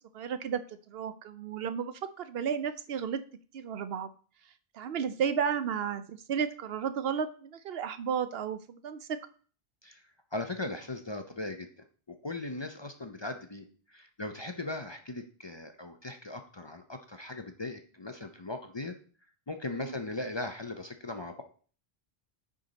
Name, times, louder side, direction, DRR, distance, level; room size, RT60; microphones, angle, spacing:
voice 1, 0.1-0.6 0.9-3.2 3.5-4.1 4.7-9.2 19.7-19.9, right 7 dB, 70° right, 12 dB, 0.8 m, -33 dB
voice 2, 10.3-18.9 19.5-21.4, left 2 dB, 30° left, 6 dB, 0.6 m, -39 dB
9.6 x 4.9 x 4.0 m, 0.42 s
omnidirectional pair, 1.1 m